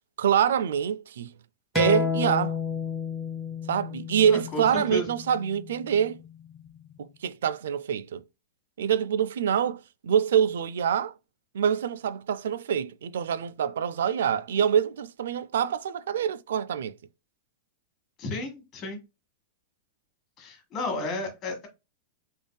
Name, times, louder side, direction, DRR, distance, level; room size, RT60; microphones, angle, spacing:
voice 1, 0.2-1.3 1.7-2.6 3.7-6.2 7.0-8.2 8.8-11.1 11.5-16.9, right 8 dB, 85° right, 0.3 m, -25 dB
sound 1, 1.8-6.9, left 5 dB, 5° left, 0.5 m, -32 dB
voice 2, 4.3-5.1 18.2-19.0 20.4-21.7, left 2 dB, 25° left, 1.4 m, -33 dB
3.5 x 3.4 x 2.2 m
supercardioid pair, 160°, 0 cm